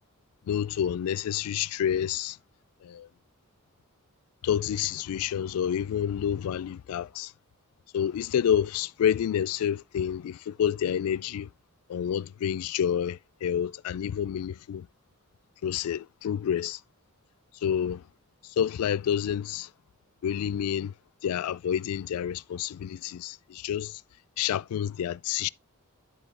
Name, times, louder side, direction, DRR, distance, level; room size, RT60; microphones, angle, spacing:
voice 1, 0.5-2.4 2.8-3.1 4.4-7.3 7.9-11.5 11.9-14.9 15.6-16.8 17.6-18.0 18.4-19.7 20.2-20.9 21.2-24.0 24.4-25.5, left 9 dB, 80° left, 0.3 m, -29 dB
10.0 x 4.2 x 3.3 m
head